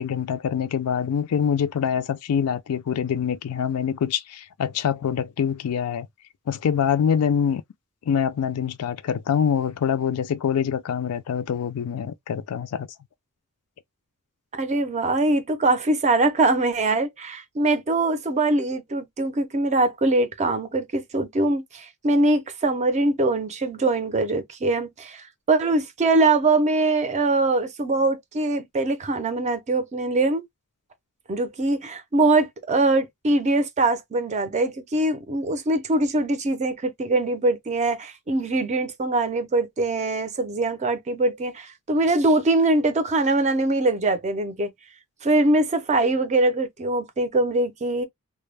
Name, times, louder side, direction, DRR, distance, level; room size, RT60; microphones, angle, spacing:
voice 1, 0.0-6.1 6.5-7.6 8.1-12.9, left 7 dB, 80° left, 0.4 m, -25 dB
voice 2, 14.5-30.4 31.3-44.7 45.2-48.0, right 2 dB, 30° right, 0.5 m, -22 dB
2.1 x 2.0 x 3.1 m
head